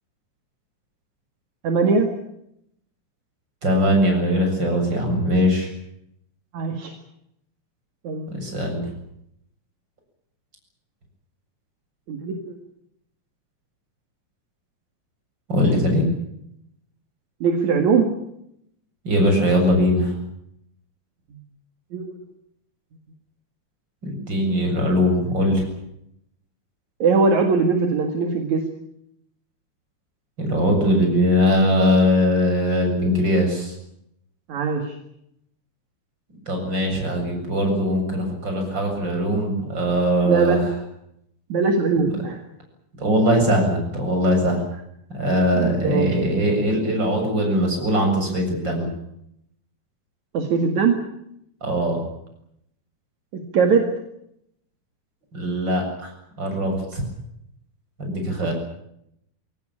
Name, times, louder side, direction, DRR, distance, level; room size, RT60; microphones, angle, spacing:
voice 1, 1.6-2.1 6.5-6.9 8.0-8.4 12.1-12.6 17.4-18.1 21.9-22.1 27.0-28.7 34.5-35.0 40.2-40.6 41.5-42.4 45.5-46.1 50.3-51.0 53.3-53.9 58.4-58.5, right 5 dB, 70° right, 4 dB, 3.4 m, -21 dB
voice 2, 3.6-5.7 8.3-8.8 15.5-16.0 19.0-20.1 24.0-25.7 30.4-33.7 36.5-40.6 42.0-42.1 43.0-44.6 45.1-48.9 51.6-52.0 55.3-56.1 56.4-57.0 58.0-58.5, equal, 35° right, 2 dB, 8.2 m, -21 dB
23.5 x 17.5 x 10.0 m, 0.78 s
omnidirectional pair, 3.5 m